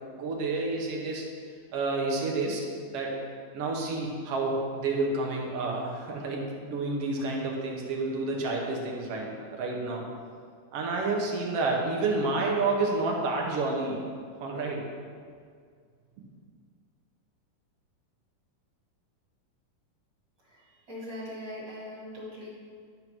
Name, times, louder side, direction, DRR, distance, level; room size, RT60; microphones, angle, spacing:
voice 1, 0.1-1.3 1.7-3.2 3.5-10.0 10.7-14.0 14.4-14.9, right 3 dB, 65° right, -1 dB, 1.6 m, -29 dB
voice 2, 20.5-22.5, left 1 dB, 35° right, -7 dB, 2.8 m, -41 dB
11.0 x 3.7 x 6.0 m, 2.1 s
omnidirectional pair, 3.9 m